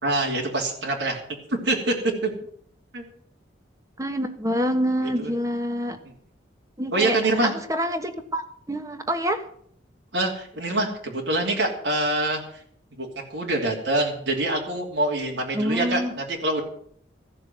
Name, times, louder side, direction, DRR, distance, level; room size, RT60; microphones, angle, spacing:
voice 1, 0.0-1.2 1.6-1.9 2.2-2.3 2.9-3.0 5.2-5.3 6.0-6.1 6.9-7.5 10.1-12.4 13.0-16.6, right 2 dB, 70° right, -1 dB, 2.9 m, -25 dB
voice 2, 4.0-6.0 6.8-8.4 8.7-9.4 15.5-16.1, equal, 15° right, 8 dB, 1.3 m, -26 dB
15.0 x 6.9 x 9.2 m, 0.62 s
head